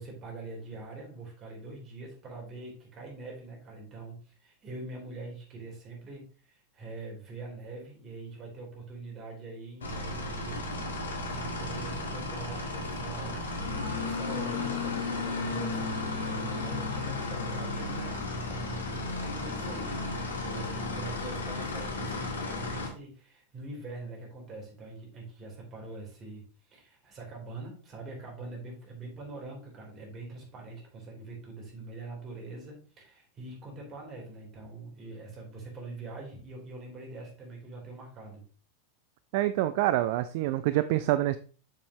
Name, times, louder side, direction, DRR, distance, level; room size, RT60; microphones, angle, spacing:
voice 1, 0.0-13.5 14.0-38.4, right 3 dB, 30° right, -1 dB, 3.8 m, -43 dB
sound 1, 9.8-22.9, left 3 dB, 65° left, 1.7 m, -34 dB
voice 2, 39.3-41.4, right 15 dB, 50° right, 13 dB, 0.4 m, -26 dB
7.5 x 7.0 x 3.0 m, 0.39 s
figure-of-eight pair, 90°, 0 cm